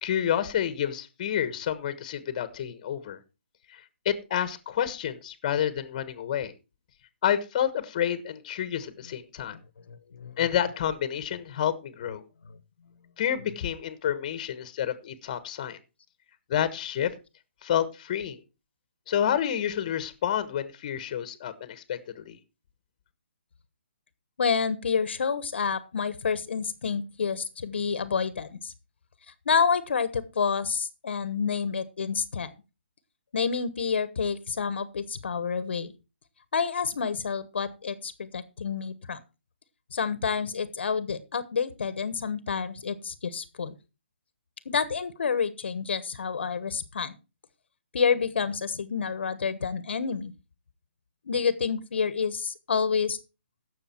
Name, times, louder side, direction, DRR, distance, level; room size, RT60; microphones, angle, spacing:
voice 1, 0.0-3.2 3.7-6.5 7.2-9.6 10.4-12.2 13.2-15.8 16.5-17.1 17.6-18.4 19.1-22.4, left 9 dB, 35° left, 13 dB, 1.3 m, -29 dB
voice 2, 9.9-10.7 24.4-28.7 29.4-32.5 33.3-35.9 36.5-39.2 39.9-43.7 44.6-47.2 47.9-50.3 51.2-53.2, left 6 dB, 65° left, 15 dB, 1.1 m, -29 dB
16.5 x 6.8 x 4.4 m, 0.29 s
hypercardioid pair, 160°, 7 cm